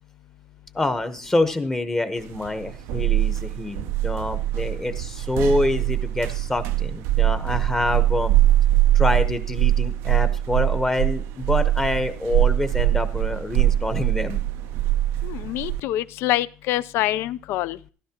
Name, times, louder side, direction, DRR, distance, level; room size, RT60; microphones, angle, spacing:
voice 1, 0.7-8.3 8.9-14.4, left 2 dB, 10° left, 10 dB, 0.9 m, -26 dB
sound 1, 2.3-15.8, right 14 dB, 85° right, 0.5 m, -22 dB
voice 2, 15.2-17.8, left 15 dB, 70° left, 18 dB, 0.5 m, -25 dB
14.5 x 12.5 x 2.9 m, 0.37 s
cardioid pair, 155°, 4 cm